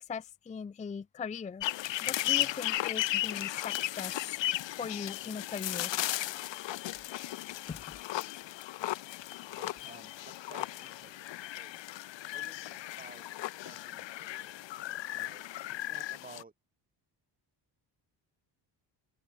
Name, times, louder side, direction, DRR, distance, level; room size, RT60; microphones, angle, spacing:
voice 1, 0.0-1.6 2.0-4.4 4.8-5.9 7.7-7.9, left 6 dB, 15° left, 0.5 m, -40 dB
sound 1, 1.6-16.4, left 15 dB, 75° left, 1.6 m, -35 dB
voice 2, 9.6-11.7 12.3-14.6 15.1-16.5, right 3 dB, 20° right, 6.9 m, -55 dB
cardioid pair, 145°, 45 cm